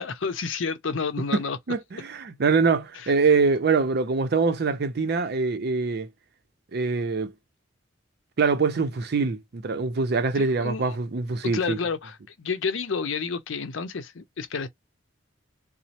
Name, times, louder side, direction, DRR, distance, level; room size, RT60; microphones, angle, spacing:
voice 1, 0.0-1.6 2.9-3.1 10.3-11.0 11.4-14.7, left 5 dB, 85° left, 0.6 m, -30 dB
voice 2, 1.7-6.1 6.7-7.3 8.4-11.8, right 4 dB, 55° right, 0.5 m, -24 dB
3.0 x 2.0 x 2.8 m
head